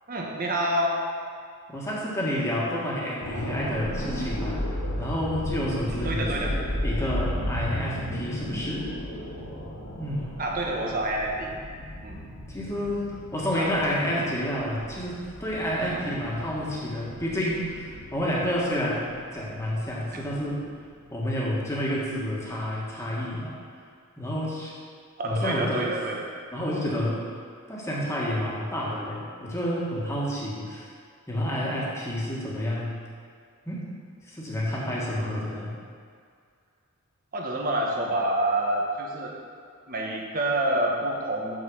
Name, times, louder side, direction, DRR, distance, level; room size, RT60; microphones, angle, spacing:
voice 1, 0.1-1.0 5.9-6.5 10.4-11.5 12.0-12.2 13.5-13.7 14.1-14.3 15.9-16.1 25.2-26.3 35.1-35.4 37.3-39.4 39.9-41.5, right 1 dB, 40° right, -1 dB, 1.3 m, -28 dB
voice 2, 1.7-8.9 9.9-10.3 12.5-20.6 21.1-23.5 24.2-24.8 25.2-26.0 26.5-27.3 27.7-30.9 31.3-33.0 33.7-33.9 34.2-35.7, equal, 15° left, -6 dB, 1.7 m, -29 dB
sound 1, 3.2-21.1 21.4-21.6, equal, 85° left, 1.8 m, -34 dB
6.7 x 6.4 x 6.4 m, 2.2 s
head